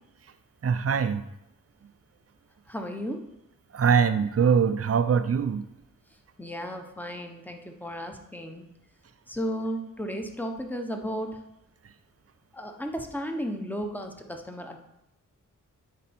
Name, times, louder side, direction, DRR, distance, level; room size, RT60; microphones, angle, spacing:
voice 1, 0.6-1.2 3.7-5.6, right 6 dB, 45° right, 11 dB, 0.6 m, -23 dB
voice 2, 2.7-3.2 6.4-8.7 9.3-11.4 12.5-14.8, equal, 5° left, 4 dB, 1.0 m, -34 dB
9.4 x 4.2 x 4.3 m, 0.84 s
cardioid pair, 70°, 33 cm